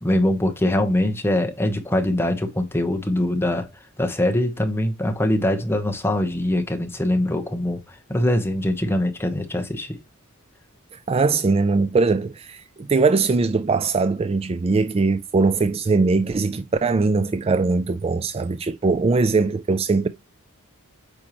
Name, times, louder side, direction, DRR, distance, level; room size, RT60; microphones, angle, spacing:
voice 1, 0.0-3.7 4.0-7.8 8.1-10.0, left 1 dB, 10° left, 1.0 m, -22 dB
voice 2, 10.9-20.1, right 4 dB, 25° right, 0.3 m, -21 dB
8.6 x 4.7 x 3.0 m
head